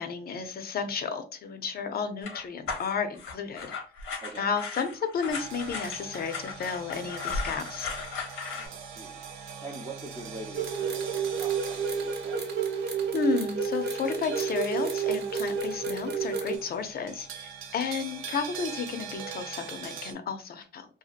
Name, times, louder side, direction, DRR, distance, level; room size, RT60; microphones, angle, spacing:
voice 1, 0.0-3.7 4.4-7.9 13.1-20.9, left 6 dB, 50° left, 8 dB, 0.5 m, -32 dB
sound 1, 2.2-8.7, left 4 dB, 85° left, 0.9 m, -36 dB
voice 2, 4.2-4.5 8.5-12.4, right 2 dB, 25° right, -2 dB, 0.6 m, -44 dB
sound 2, 5.3-20.1, right 6 dB, 85° right, 0.5 m, -43 dB
sound 3, 10.5-16.6, right 6 dB, 55° right, 0.8 m, -30 dB
2.7 x 2.4 x 2.4 m, 0.37 s
cardioid pair, 90°, 20 cm